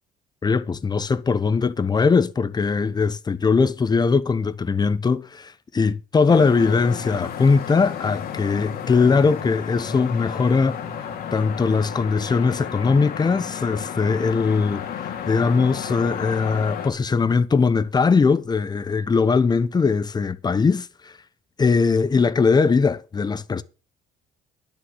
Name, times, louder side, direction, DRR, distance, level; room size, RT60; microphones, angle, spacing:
voice 1, 0.4-10.8 11.3-21.1 21.6-23.6, left 4 dB, 25° left, 0.9 m, -20 dB
sound 1, 6.3-16.9, left 8 dB, 65° left, 2.3 m, -32 dB
10.5 x 6.3 x 8.0 m
cardioid pair, 110°, 17 cm